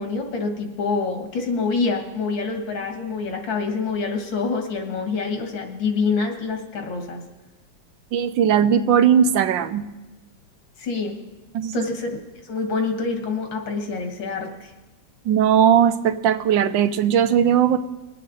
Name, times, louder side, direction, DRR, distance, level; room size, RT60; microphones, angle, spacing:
voice 1, 0.0-7.2 10.8-11.1 11.7-12.1 12.4-14.7, left 4 dB, 85° left, 4 dB, 2.3 m, -26 dB
voice 2, 8.1-9.8 11.6-11.7 15.3-17.8, right 8 dB, 80° right, 10 dB, 1.4 m, -18 dB
21.5 x 8.6 x 3.9 m, 1.1 s
omnidirectional pair, 2.0 m